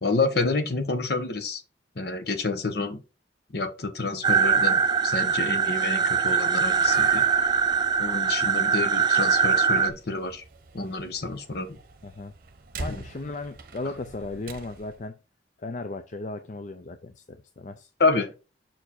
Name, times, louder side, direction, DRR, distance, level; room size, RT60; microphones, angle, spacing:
voice 1, 0.0-1.6 2.0-3.0 3.5-7.2 8.0-10.4 10.7-11.8 12.9-13.0 18.0-18.3, left 3 dB, 60° left, 1.2 m, -28 dB
sound 1, 4.2-9.9, right 6 dB, 25° right, 0.4 m, -22 dB
Slam, 6.6-15.0, right 3 dB, 55° right, 0.8 m, -44 dB
voice 2, 12.0-12.3 12.8-15.1 15.6-17.9, left 2 dB, 40° left, 0.5 m, -36 dB
5.9 x 4.6 x 4.2 m
head